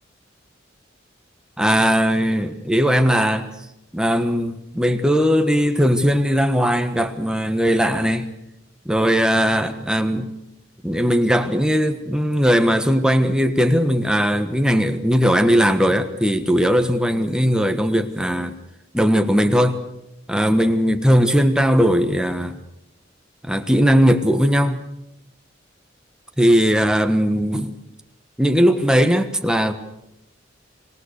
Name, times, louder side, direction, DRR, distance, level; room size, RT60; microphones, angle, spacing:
voice 1, 1.6-3.5 3.9-8.3 8.8-10.3 10.8-18.6 18.9-19.8 20.3-22.6 23.4-24.8 26.4-27.8 28.4-29.7, equal, 5° right, 1.4 m, -18 dB
26.0 x 19.5 x 6.6 m
head